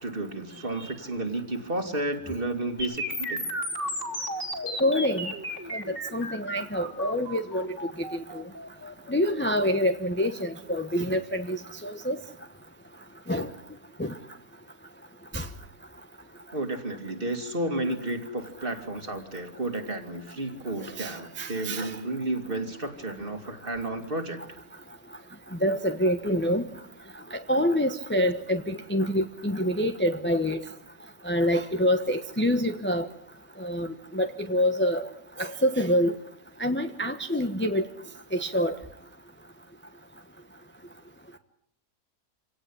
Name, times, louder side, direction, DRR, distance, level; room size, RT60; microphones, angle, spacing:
voice 1, 0.0-3.5 16.5-24.4, right 2 dB, 35° right, 6 dB, 2.7 m, -32 dB
sound 1, 2.8-10.8, equal, 35° left, 3.6 m, -35 dB
voice 2, 4.8-5.3 5.7-7.7 8.0-8.4 9.1-12.2 13.3-13.5 14.0-14.2 15.3-15.5 20.8-22.0 25.6-26.7 27.3-30.6 31.2-33.1 33.6-35.1 35.4-36.1 36.6-37.9 38.3-38.8, equal, 10° left, 6 dB, 1.0 m, -26 dB
27.0 x 18.0 x 10.0 m, 0.72 s
omnidirectional pair, 1.6 m